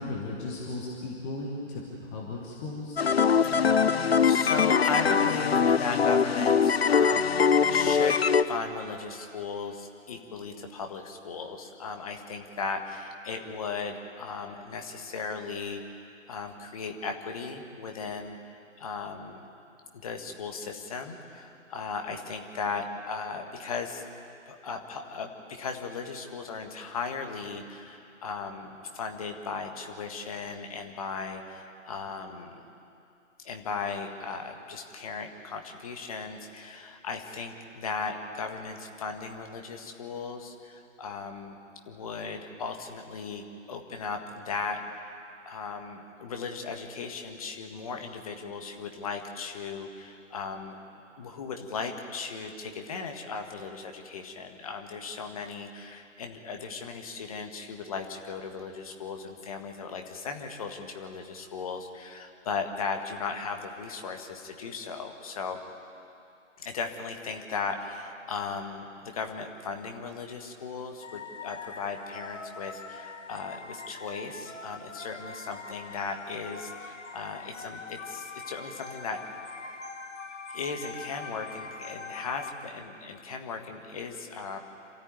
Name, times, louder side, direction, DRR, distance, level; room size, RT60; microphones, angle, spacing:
voice 1, 0.0-3.0, left 2 dB, 10° left, -3 dB, 1.1 m, -36 dB
sound 1, 3.0-8.4, left 6 dB, 50° left, 0.7 m, -22 dB
voice 2, 3.5-3.9 4.2-7.4 7.7-19.4 19.9-24.2 24.5-32.6 33.4-41.6 41.8-45.1 45.4-50.8 51.2-65.6 66.6-79.2 80.5-84.6, left 5 dB, 25° left, 4 dB, 1.6 m, -37 dB
sound 2, 71.0-82.5, left 4 dB, 65° left, 1.8 m, -43 dB
27.0 x 13.5 x 9.5 m, 2.6 s
figure-of-eight pair, 155°, 40 cm